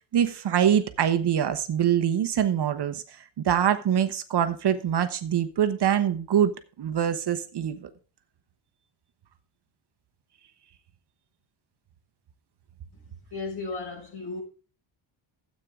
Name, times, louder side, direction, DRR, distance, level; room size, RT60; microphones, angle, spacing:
voice 1, 0.1-3.0 3.4-6.5 6.8-7.9, right 9 dB, 55° right, 1.1 m, -24 dB
voice 2, 13.3-14.4, left 3 dB, 50° left, 6.2 m, -35 dB
13.5 x 8.5 x 3.6 m
wide cardioid pair, 160°, 49 cm